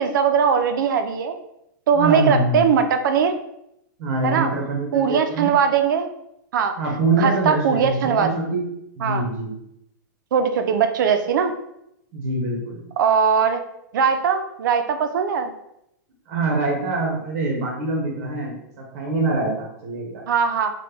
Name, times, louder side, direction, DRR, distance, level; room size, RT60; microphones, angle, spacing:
voice 1, 0.0-1.4 1.9-3.3 4.2-4.5 4.9-6.1 6.5-6.8 7.2-8.3 9.0-9.2 10.3-11.5 13.0-13.6 13.9-15.5 20.3-20.7, right 6 dB, 70° right, 7 dB, 0.4 m, -20 dB
voice 2, 1.9-2.7 4.0-5.5 6.8-8.7 9.0-9.5 12.1-12.9 16.3-20.2, right 2 dB, 45° right, -2 dB, 0.9 m, -24 dB
3.0 x 2.2 x 3.3 m, 0.80 s
supercardioid pair, 165°, 11 cm